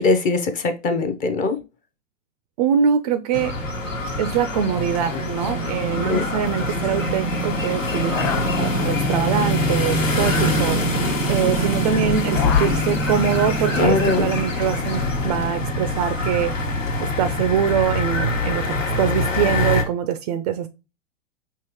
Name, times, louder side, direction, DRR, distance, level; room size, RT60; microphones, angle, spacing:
voice 1, 0.0-1.6 6.1-6.2 13.8-14.4, left 3 dB, 20° left, 8 dB, 0.6 m, -21 dB
voice 2, 2.6-3.5 4.2-8.2 8.6-10.8 11.3-16.5 17.0-18.6 19.0-20.7, right 8 dB, 35° right, 10 dB, 0.4 m, -23 dB
sound 1, 3.3-19.8, left 1 dB, 85° left, 1.4 m, -23 dB
sound 2, 4.9-5.0 5.2-5.6 5.9-7.1 7.8-11.8 12.0-14.3 14.6-15.5, left 5 dB, 40° left, 1.4 m, -33 dB
5.6 x 2.9 x 2.9 m, 0.28 s
figure-of-eight pair, 105°, 38 cm